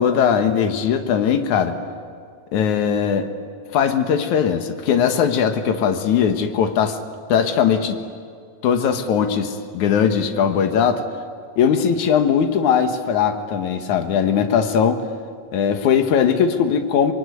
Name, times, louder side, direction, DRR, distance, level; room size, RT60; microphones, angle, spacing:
voice 1, 0.0-1.8 2.5-3.3 3.7-7.0 7.3-8.0 8.6-11.0 11.6-15.0 15.5-17.1, left 7 dB, 75° left, 7 dB, 2.8 m, -19 dB
25.5 x 22.5 x 9.5 m, 2.2 s
omnidirectional pair, 3.5 m